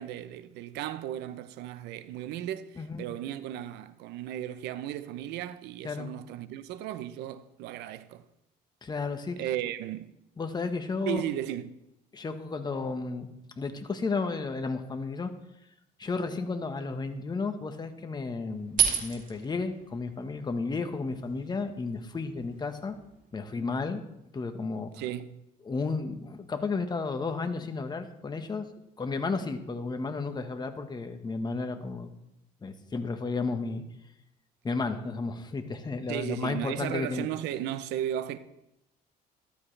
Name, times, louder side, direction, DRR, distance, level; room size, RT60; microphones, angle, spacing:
voice 1, 0.0-8.2 9.4-10.1 11.1-11.7 24.9-25.4 36.1-38.4, right 12 dB, 90° right, 0.7 m, -35 dB
voice 2, 8.8-9.4 10.4-11.2 12.1-13.3 13.6-15.3 16.0-23.0 23.3-24.0 24.3-24.9 25.7-28.6 29.0-32.1 32.6-33.8 34.6-37.3, left 4 dB, 25° left, 1.3 m, -33 dB
sound 1, 18.5-23.7, right 8 dB, 50° right, 2.9 m, -34 dB
14.0 x 12.5 x 3.3 m
cardioid pair, 110°, 17 cm